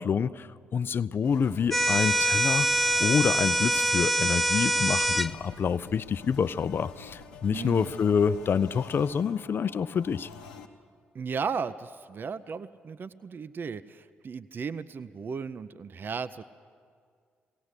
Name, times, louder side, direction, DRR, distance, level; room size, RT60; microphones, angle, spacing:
voice 1, 0.0-2.7 3.0-10.3, left 6 dB, 45° left, 16 dB, 0.5 m, -27 dB
sound 1, 1.2-10.6, left 4 dB, 80° left, 1.0 m, -46 dB
sound 2, 1.7-5.3, right 1 dB, 5° left, 0.8 m, -24 dB
voice 2, 7.5-7.9 11.1-16.4, right 5 dB, 40° right, 14 dB, 0.6 m, -35 dB
20.5 x 17.5 x 8.1 m, 2.1 s
figure-of-eight pair, 40°, 5 cm